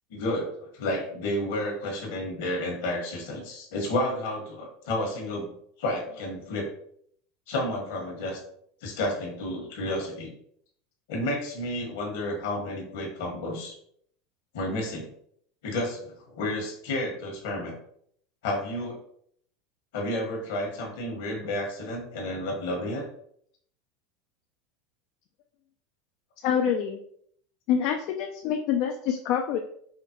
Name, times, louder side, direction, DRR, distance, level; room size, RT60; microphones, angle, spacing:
voice 1, 0.1-5.5 5.8-6.7 7.5-8.4 8.8-10.3 11.1-13.7 14.5-15.1 15.6-17.7 18.4-19.0 19.9-23.1, left 1 dB, 75° left, 0 dB, 1.3 m, -31 dB
voice 2, 26.4-27.0 27.7-29.6, left 8 dB, 60° left, 4 dB, 0.4 m, -26 dB
4.9 x 2.1 x 2.9 m, 0.65 s
supercardioid pair, 110°, 0 cm